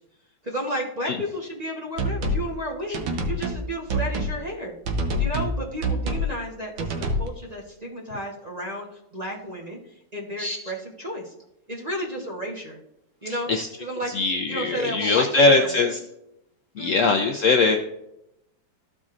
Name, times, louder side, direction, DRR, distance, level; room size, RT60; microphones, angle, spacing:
voice 1, 0.4-4.7 5.2-8.9 9.1-11.3 11.7-12.8 13.2-13.5 13.8-14.1 14.5-15.9 16.8-17.0, equal, 30° right, -2 dB, 0.9 m, -32 dB
sound 1, 2.0-2.5 2.9-3.6 3.9-4.4 4.9-5.6 5.8-6.3 6.8-7.3, equal, 80° right, 1.6 m, -26 dB
voice 2, 14.2-16.0 16.8-17.8, left 3 dB, 90° left, 4 dB, 0.6 m, -20 dB
13.5 x 5.1 x 2.5 m, 0.84 s
omnidirectional pair, 2.1 m